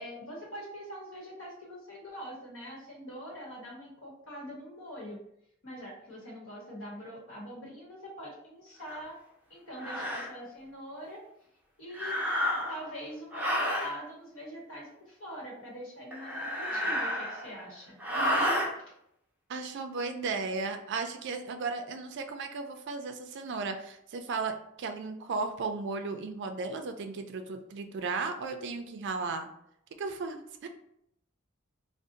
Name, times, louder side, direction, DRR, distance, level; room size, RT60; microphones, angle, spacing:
voice 1, 0.0-5.2 5.6-9.2 9.5-11.2 11.8-12.1 12.7-17.9 18.7-18.9, equal, 65° left, -3 dB, 1.0 m, -43 dB
sound 1, 8.9-9.0 9.8-10.3 11.9-12.9 13.3-13.9 16.1-17.6 18.0-18.7, equal, 10° right, 0.7 m, -30 dB
voice 2, 19.5-29.5 30.0-30.7, right 4 dB, 60° right, 7 dB, 0.4 m, -35 dB
2.6 x 2.0 x 3.8 m, 0.74 s
head